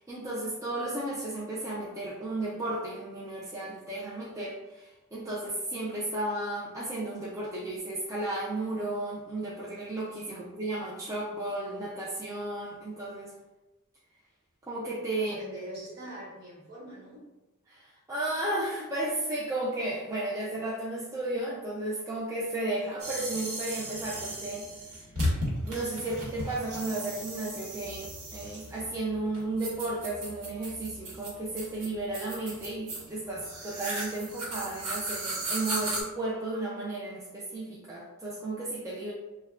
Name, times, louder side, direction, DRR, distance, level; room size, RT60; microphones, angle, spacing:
voice 1, 0.0-13.3 14.6-15.4 17.7-25.1 25.7-39.1, right 2 dB, 15° right, -6 dB, 0.3 m, -34 dB
voice 2, 15.2-17.2, right 1 dB, 50° right, -7 dB, 1.1 m, -43 dB
sound 1, 23.0-36.0, right 1 dB, 90° right, 1.0 m, -36 dB
3.3 x 2.1 x 2.3 m, 1.1 s
head